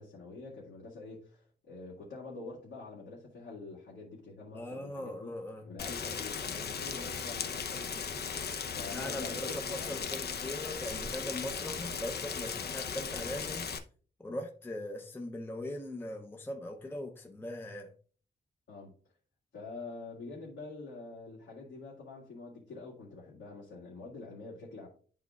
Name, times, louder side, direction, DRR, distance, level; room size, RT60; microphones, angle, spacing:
voice 1, 0.0-5.3 5.6-7.9 8.7-10.0 18.7-18.9 19.5-24.9, left 3 dB, 85° left, 2.0 m, -46 dB
voice 2, 4.5-5.7 8.9-13.7 14.2-17.9, left 1 dB, 10° left, 0.5 m, -40 dB
Rain, 5.8-13.8, left 6 dB, 55° left, 0.6 m, -37 dB
11.5 x 3.9 x 2.3 m
wide cardioid pair, 135°, 19 cm